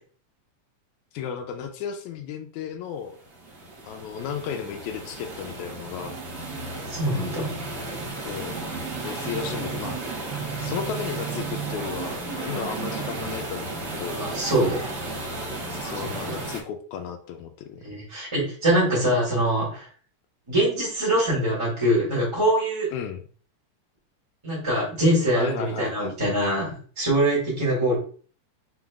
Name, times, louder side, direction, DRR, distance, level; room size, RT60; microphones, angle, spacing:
voice 1, 1.1-3.2 3.8-6.2 8.3-8.6 9.0-9.9 10.6-14.2 15.7-17.8 22.9-23.2 25.4-26.1, left 8 dB, 90° left, 6 dB, 2.0 m, -34 dB
sound 1, 3.2-16.6, right 3 dB, 60° right, 1.1 m, -33 dB
voice 2, 6.9-7.5 14.1-14.8 16.3-16.4 17.8-19.9 20.5-22.9 24.4-27.9, right 1 dB, 10° right, -8 dB, 1.6 m, -23 dB
5.0 x 3.9 x 2.3 m, 0.42 s
omnidirectional pair, 3.3 m